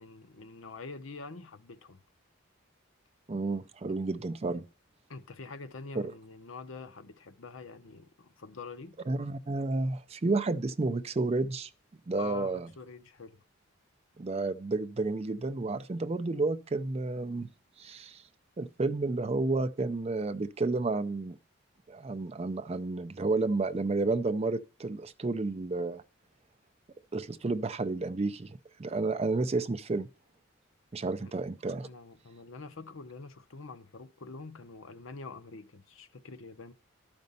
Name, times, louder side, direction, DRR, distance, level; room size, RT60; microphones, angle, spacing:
voice 1, 0.0-2.0 5.1-9.0 12.2-13.4 31.2-31.3 31.8-36.7, left 4 dB, 65° left, 0.7 m, -45 dB
voice 2, 3.3-4.6 5.9-6.0 9.1-11.7 12.1-12.7 14.2-17.5 17.8-18.2 18.6-21.4 21.9-26.0 27.1-30.1 30.9-31.9, right 3 dB, 30° right, 0.4 m, -31 dB
12.0 x 5.2 x 5.4 m
head